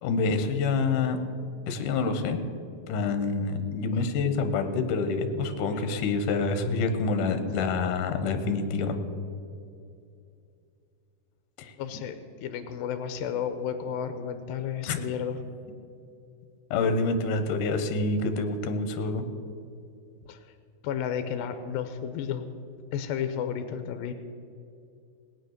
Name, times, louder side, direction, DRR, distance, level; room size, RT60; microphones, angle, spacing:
voice 1, 0.0-1.2 1.7-2.4 2.9-9.0 11.6-11.7 14.9-15.0 16.7-19.2, left 4 dB, 70° left, 8 dB, 2.6 m, -27 dB
voice 2, 11.8-12.2 12.4-15.4 20.3-20.5 20.8-22.5 22.9-24.1, left 8 dB, 85° left, 9 dB, 2.5 m, -32 dB
18.0 x 9.6 x 6.6 m, 2.5 s
omnidirectional pair, 4.0 m